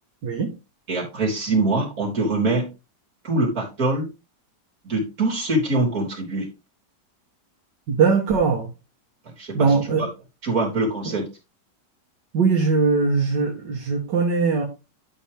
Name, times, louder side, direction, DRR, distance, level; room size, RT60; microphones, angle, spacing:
voice 1, 0.9-2.7 3.2-4.1 4.8-6.5 9.4-10.1 10.4-11.2, right 2 dB, 50° right, -4 dB, 3.8 m, -23 dB
voice 2, 7.9-8.7 9.5-10.1 11.1-11.2 12.3-14.6, right 4 dB, 75° right, 0 dB, 2.1 m, -20 dB
12.0 x 5.8 x 3.4 m, 0.29 s
omnidirectional pair, 1.9 m